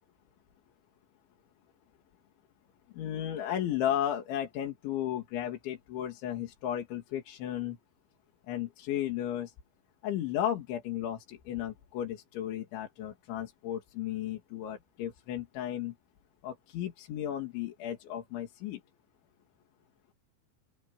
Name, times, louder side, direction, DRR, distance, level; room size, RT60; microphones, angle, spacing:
voice 1, 2.9-7.8 8.5-9.5 10.0-15.9 16.4-18.8, left 11 dB, 85° left, 4.9 m, -34 dB
open air
omnidirectional pair, 5.2 m